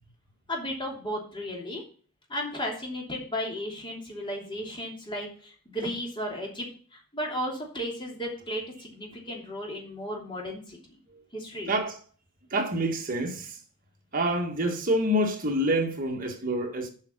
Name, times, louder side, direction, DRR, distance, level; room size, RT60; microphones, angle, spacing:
voice 1, 0.5-1.8 2.3-11.0 11.3-11.7, equal, 20° left, 2.9 m, -34 dB
voice 2, 11.7-12.0 12.5-13.6 14.1-16.9, right 1 dB, 40° right, 1.8 m, -27 dB
7.5 x 5.7 x 6.1 m
head